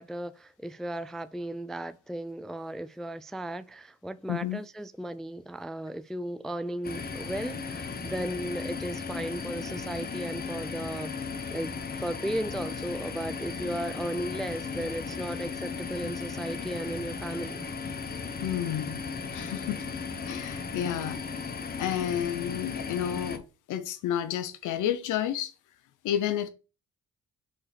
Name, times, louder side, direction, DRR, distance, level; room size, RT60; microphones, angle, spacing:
voice 1, 0.0-11.7 12.0-17.6, right 1 dB, ahead, 0.3 m, -35 dB
voice 2, 4.3-4.6 18.4-19.0 19.3-19.8 20.2-21.2 21.8-23.4 23.7-25.5 26.0-26.5, left 10 dB, 85° left, 0.9 m, -30 dB
sound 1, 6.8-23.4, left 5 dB, 30° left, 1.1 m, -36 dB
5.4 x 4.3 x 5.1 m
cardioid pair, 90°, 30 cm